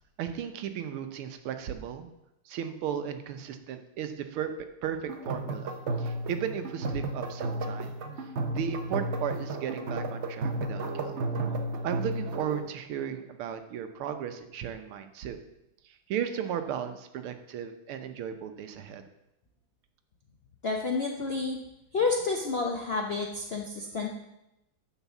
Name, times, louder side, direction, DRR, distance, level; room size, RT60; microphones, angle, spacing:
voice 1, 0.2-2.1 2.4-4.5 4.8-11.2 11.8-15.4 15.8-19.0, right 9 dB, 90° right, 8 dB, 1.7 m, -35 dB
sound 1, 5.1-12.7, right 2 dB, 70° right, 0.6 m, -33 dB
voice 2, 20.6-21.6 21.9-24.1, left 4 dB, 55° left, 0 dB, 0.6 m, -29 dB
9.8 x 4.6 x 7.1 m, 0.88 s
omnidirectional pair, 2.3 m